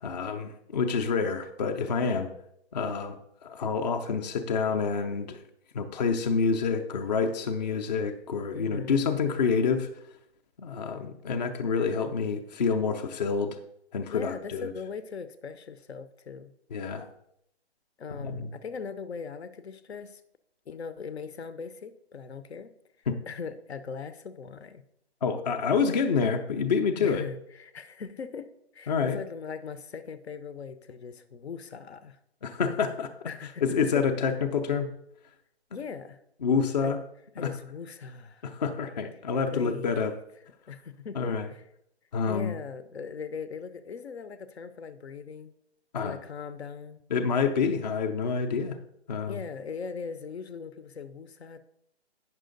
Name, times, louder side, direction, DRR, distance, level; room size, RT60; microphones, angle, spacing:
voice 1, 0.0-2.3 2.7-5.4 5.7-9.9 10.6-13.6 13.9-14.7 16.7-17.1 18.2-18.5 23.1-23.2 25.2-27.3 28.9-29.2 32.4-33.3 33.6-34.9 36.4-37.0 37.4-37.5 38.4-40.1 41.2-41.5 42.1-42.5 45.9-46.2 47.1-48.8 49.1-49.4, left 5 dB, 40° left, 4 dB, 0.6 m, -28 dB
voice 2, 8.5-9.2 14.1-16.5 18.0-20.2 20.7-22.7 23.3-24.8 27.0-32.2 33.2-34.0 35.7-36.2 36.8-36.9 37.4-38.5 39.5-40.2 40.7-41.6 42.3-45.5 46.0-47.0 49.2-51.6, left 5 dB, 70° left, 12 dB, 0.8 m, -40 dB
9.3 x 6.1 x 3.9 m, 0.75 s
hypercardioid pair, 160°, 34 cm